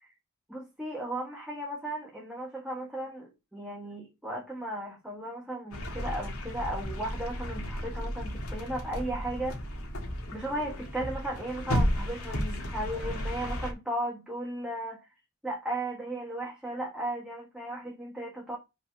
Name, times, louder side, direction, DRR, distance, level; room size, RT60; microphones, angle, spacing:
voice 1, 0.5-9.6 10.3-15.1 15.4-18.6, right 1 dB, 5° right, 1.2 m, -36 dB
sound 1, 5.7-13.7, equal, 70° left, 1.6 m, -33 dB
5.8 x 4.2 x 5.0 m
head